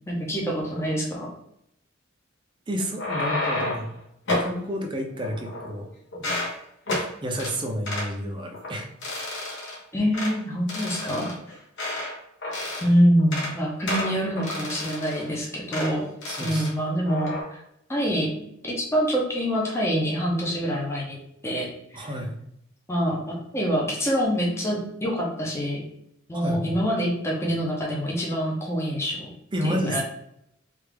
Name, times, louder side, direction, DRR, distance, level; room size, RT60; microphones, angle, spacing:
voice 1, 0.1-1.3 9.9-11.3 12.8-16.1 16.4-17.6 17.9-18.3 18.6-21.2 21.4-21.7 21.9-22.1 22.9-25.8 26.3-29.3 29.6-30.0, equal, 15° left, -3 dB, 0.7 m, -25 dB
voice 2, 2.7-3.9 4.4-5.9 6.9-8.9 16.3-16.7 21.9-22.3 26.3-26.8 29.5-30.0, equal, 25° right, 2 dB, 0.5 m, -30 dB
sound 1, 2.8-3.9 4.3-4.5 5.2-5.8 6.1-6.5 6.9-7.1 7.4-7.5 7.9-8.1 8.5-8.7 9.0-9.8 10.1-10.3 10.7-12.1 12.4-12.9 13.2-13.5 13.9-15.3 15.7-15.9 16.2-16.7 17.1-17.4, left 2 dB, 65° left, 1.0 m, -30 dB
3.3 x 2.4 x 3.3 m, 0.75 s
head